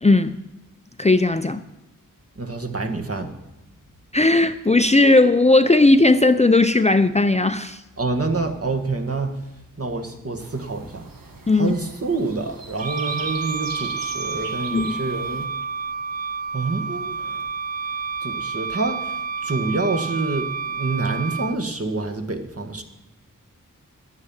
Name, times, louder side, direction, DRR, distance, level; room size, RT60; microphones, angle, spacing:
voice 1, 0.0-0.4 1.0-1.6 4.1-7.8 11.5-11.8 14.7-15.0, left 2 dB, 20° left, 10 dB, 0.6 m, -17 dB
voice 2, 2.4-3.3 8.0-9.4 9.8-11.1 11.6-15.5 16.5-17.4 18.2-19.2 19.4-22.8, right 3 dB, 45° right, 4 dB, 1.8 m, -27 dB
sound 1, 10.4-15.5, right 3 dB, 90° right, 1.5 m, -39 dB
Wind instrument woodwind instrument, 12.8-21.6, right 5 dB, 25° right, 0.4 m, -29 dB
11.5 x 9.6 x 8.9 m, 0.98 s
wide cardioid pair, 70°, 33 cm